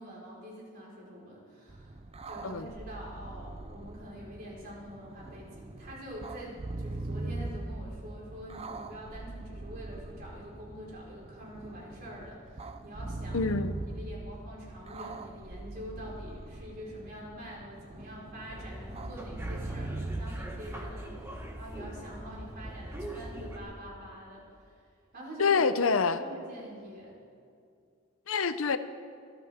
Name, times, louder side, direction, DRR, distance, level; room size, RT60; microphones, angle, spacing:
voice 1, 0.0-2.0 2.3-13.6 13.9-24.4 25.1-25.7 26.1-27.2, equal, 45° right, -4 dB, 4.8 m, -45 dB
sound 1, 1.7-21.0, right 2 dB, 30° right, 0.6 m, -41 dB
voice 2, 13.3-13.7 25.4-26.2 28.3-28.8, left 5 dB, 70° left, 11 dB, 0.7 m, -26 dB
sound 2, 18.5-23.6, right 1 dB, 10° right, 1.5 m, -42 dB
24.5 x 13.5 x 3.7 m, 2.4 s
head